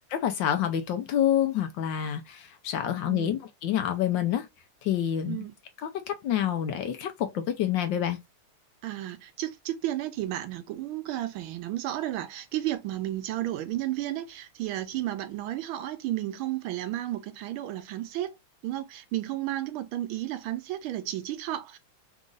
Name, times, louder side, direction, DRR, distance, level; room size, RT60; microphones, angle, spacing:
voice 1, 0.2-4.5 4.8-5.4 5.9-8.2, left 10 dB, 70° left, 1.2 m, -27 dB
voice 2, 3.1-3.4 5.2-5.5 8.8-18.3 18.6-21.8, right 14 dB, 80° right, 1.4 m, -33 dB
4.0 x 2.5 x 3.7 m
omnidirectional pair, 2.3 m